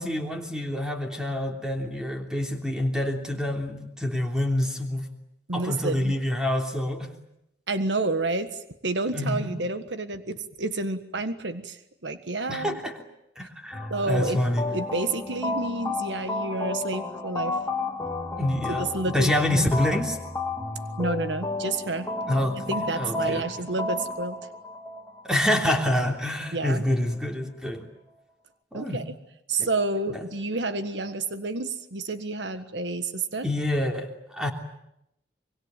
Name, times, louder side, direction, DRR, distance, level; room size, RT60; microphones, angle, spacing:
voice 1, 0.0-5.0 5.5-7.1 9.1-9.6 12.5-12.9 13.4-14.6 18.4-20.2 22.3-23.5 25.2-27.9 28.7-29.0 29.6-29.7 30.1-30.2 33.4-34.5, left 1 dB, 5° right, 2 dB, 3.2 m, -27 dB
voice 2, 5.5-6.1 7.7-12.8 13.9-14.4 14.7-17.6 18.8-19.7 21.0-22.1 22.7-24.4 26.5-26.8 28.7-29.0 29.5-33.5, right 2 dB, 80° right, 10 dB, 1.6 m, -29 dB
sound 1, 13.7-26.7, left 2 dB, 15° left, 3.2 m, -32 dB
24.5 x 23.0 x 9.3 m, 0.82 s
head